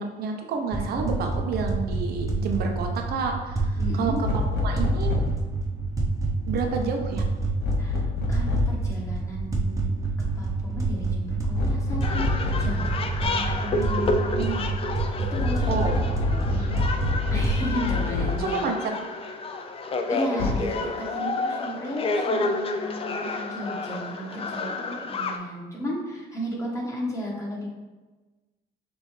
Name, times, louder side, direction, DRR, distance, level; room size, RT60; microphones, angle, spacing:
voice 1, 0.0-4.3 4.6-5.2 6.5-7.2 14.4-14.5 15.7-17.0 18.4-18.9, right 4 dB, 65° right, 3 dB, 0.8 m, -30 dB
sound 1, 0.7-17.5, right 3 dB, 20° right, 0.7 m, -28 dB
voice 2, 3.8-4.2 7.8-10.1 10.3-12.3 12.6-14.6 15.3-15.9 17.3-18.8 20.1-27.7, equal, 20° left, -3 dB, 1.2 m, -34 dB
sound 2, 4.2-5.4 7.6-8.8 11.5-12.8 15.3-18.5 20.4-20.6, left 4 dB, 80° left, 0.8 m, -27 dB
sound 3, 12.0-25.4, left 3 dB, 35° left, 0.4 m, -30 dB
6.1 x 2.6 x 3.2 m, 1.2 s
cardioid pair, 110°, 17 cm